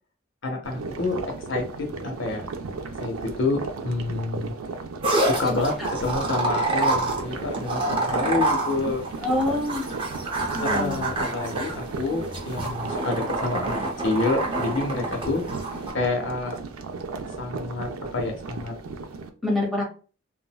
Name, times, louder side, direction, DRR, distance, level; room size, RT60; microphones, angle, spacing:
voice 1, 0.4-2.4 3.0-4.5 5.3-9.0 10.6-13.7 14.0-15.4 15.9-16.6 17.4-18.7, left 3 dB, 65° left, 3 dB, 0.6 m, -28 dB
sound 1, 0.6-19.3, right 4 dB, 90° right, 0.4 m, -35 dB
sound 2, 5.0-15.9, right 2 dB, 25° right, 0.6 m, -28 dB
voice 2, 9.2-10.0 10.5-11.0 19.4-19.8, left 2 dB, ahead, -3 dB, 0.9 m, -26 dB
3.7 x 2.1 x 2.2 m, 0.36 s
head